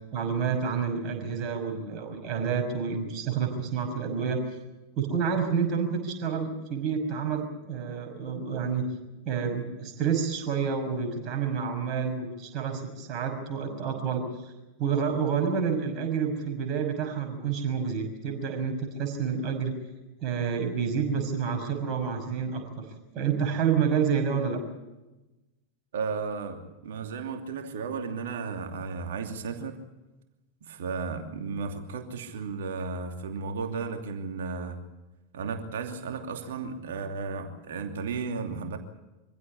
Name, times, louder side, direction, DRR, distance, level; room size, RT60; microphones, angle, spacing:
voice 1, 0.1-4.4 5.0-8.8 9.2-14.5 14.8-19.7 20.2-22.8 23.1-24.6, right 6 dB, 35° right, 3 dB, 5.9 m, -29 dB
voice 2, 25.9-29.8 30.6-34.8 35.3-38.8, right 4 dB, 60° right, 5 dB, 2.8 m, -34 dB
25.0 x 16.0 x 8.5 m, 1.0 s
figure-of-eight pair, 90°, 0 cm